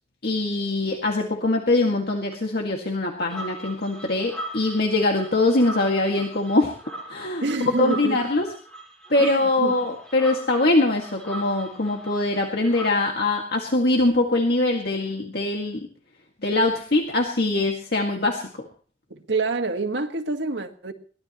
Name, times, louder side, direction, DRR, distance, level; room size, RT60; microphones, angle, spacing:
voice 1, 0.2-6.8 7.1-7.4 7.8-8.5 9.1-15.9 16.4-18.7, left 2 dB, 60° left, 2.0 m, -23 dB
sound 1, 3.3-12.9, right 1 dB, 5° left, 4.6 m, -39 dB
voice 2, 7.4-8.2 9.2-9.8 19.1-20.9, right 3 dB, 85° right, 1.7 m, -27 dB
22.5 x 18.0 x 3.1 m
head